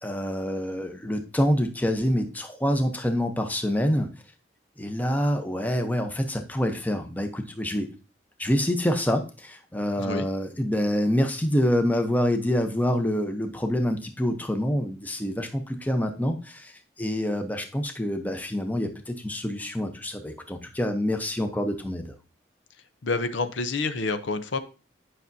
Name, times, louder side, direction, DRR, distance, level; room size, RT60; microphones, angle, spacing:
voice 1, 0.0-4.1 4.8-7.9 8.4-22.1, equal, 10° left, 5 dB, 0.7 m, -26 dB
voice 2, 10.0-10.3 23.0-24.6, left 3 dB, 75° left, 10 dB, 0.7 m, -28 dB
9.9 x 5.8 x 2.7 m, 0.34 s
head